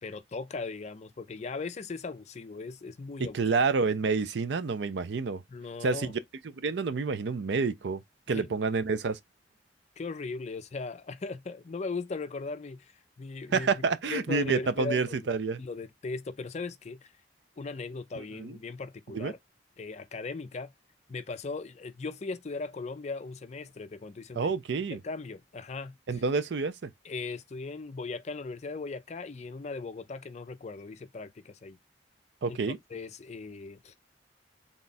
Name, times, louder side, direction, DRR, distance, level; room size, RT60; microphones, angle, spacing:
voice 1, 0.0-3.4 5.5-6.1 8.3-8.6 10.0-13.7 14.1-15.2 15.6-17.1 17.6-19.4 19.8-20.7 21.1-24.5 24.9-25.9 27.0-31.8 32.5-32.6 32.9-33.9, left 4 dB, 40° left, 0.4 m, -38 dB
voice 2, 3.2-5.4 5.8-6.2 6.6-8.0 8.3-9.2 13.5-15.6 18.4-18.6 19.1-19.3 24.4-25.0 26.1-26.9 32.4-32.8, right 4 dB, 70° right, 0.5 m, -28 dB
3.6 x 2.3 x 4.0 m
head